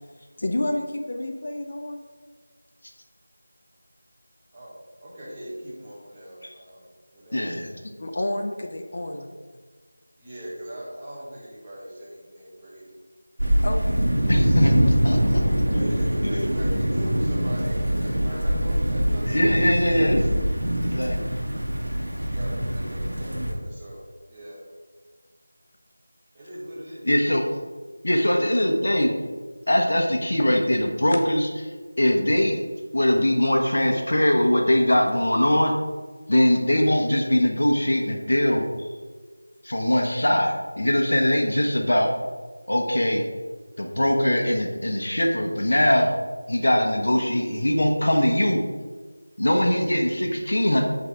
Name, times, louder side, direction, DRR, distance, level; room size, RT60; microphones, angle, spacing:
voice 1, 0.0-2.0 6.4-6.7 8.0-9.3 13.6-14.0 15.5-15.8 31.1-31.2 38.8-39.0, left 1 dB, 45° left, 4 dB, 0.6 m, -30 dB
voice 2, 4.5-6.8 7.1-7.5 9.0-9.1 10.2-13.0 13.8-14.0 15.6-19.9 20.7-21.0 22.2-24.6 26.3-27.1, equal, 15° right, -8 dB, 1.5 m, -40 dB
voice 3, 7.3-7.7 14.3-15.4 16.2-16.5 19.3-20.3 20.8-21.2 27.0-27.4 28.0-29.1 29.7-31.5 32.0-32.6 32.9-35.8 36.3-38.7 39.6-42.1 42.7-43.2 43.8-46.1 46.5-48.6 49.4-50.8, left 1 dB, 70° left, 2 dB, 1.3 m, -21 dB
sound 1, 13.4-23.5, equal, 85° right, 1.9 m, -23 dB
6.4 x 4.0 x 4.8 m, 1.4 s
figure-of-eight pair, 170°, 0 cm